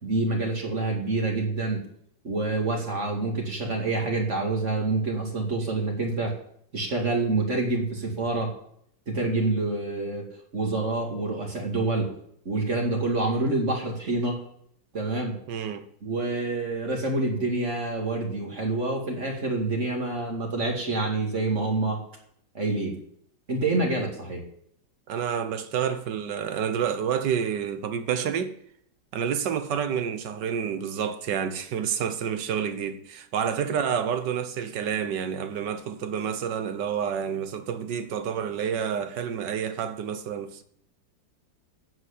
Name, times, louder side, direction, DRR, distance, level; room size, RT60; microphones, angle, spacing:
voice 1, 0.0-1.8 2.2-6.3 6.7-8.6 9.1-12.1 12.5-14.4 14.9-15.4 16.0-22.0 22.5-23.0 23.5-24.4, right 2 dB, 35° right, 2.5 m, -27 dB
voice 2, 15.5-15.8 23.8-23.9 25.1-28.5 29.1-40.6, right 8 dB, 65° right, 1.5 m, -29 dB
9.7 x 8.0 x 8.2 m
omnidirectional pair, 2.1 m